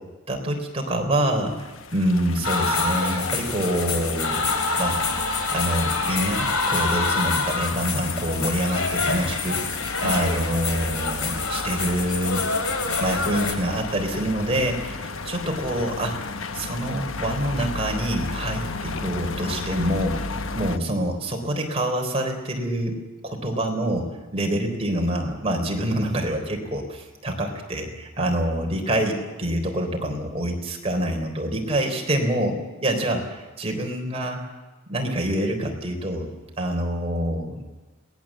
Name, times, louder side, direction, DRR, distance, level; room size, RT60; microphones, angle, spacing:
voice 1, 0.3-4.4 4.8-5.0 5.5-12.4 13.0-16.2 16.5-20.2 20.5-22.9 23.2-34.4 34.9-36.3 36.6-37.6, right 1 dB, 30° right, 2 dB, 3.8 m, -26 dB
sound 1, 1.5-20.8, left 3 dB, 70° left, 1.1 m, -34 dB
sound 2, 2.4-13.5, left 3 dB, 90° left, 3.4 m, -26 dB
22.5 x 18.5 x 7.5 m, 1.2 s
head